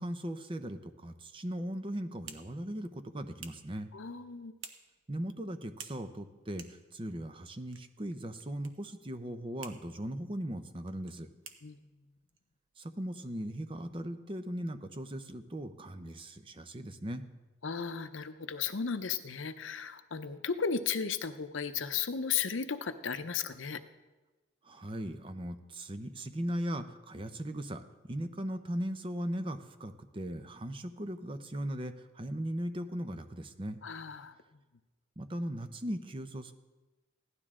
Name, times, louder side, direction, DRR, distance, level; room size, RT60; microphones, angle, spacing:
voice 1, 0.0-3.9 5.1-11.3 12.8-17.2 24.6-33.8 35.2-36.5, equal, 25° right, 9 dB, 0.6 m, -38 dB
sound 1, 1.7-14.1, right 6 dB, 80° right, 1.1 m, -55 dB
voice 2, 3.9-4.5 11.6-11.9 17.6-23.8 33.8-34.4, left 6 dB, 70° left, 10 dB, 0.7 m, -35 dB
16.5 x 12.0 x 3.7 m, 1.2 s
head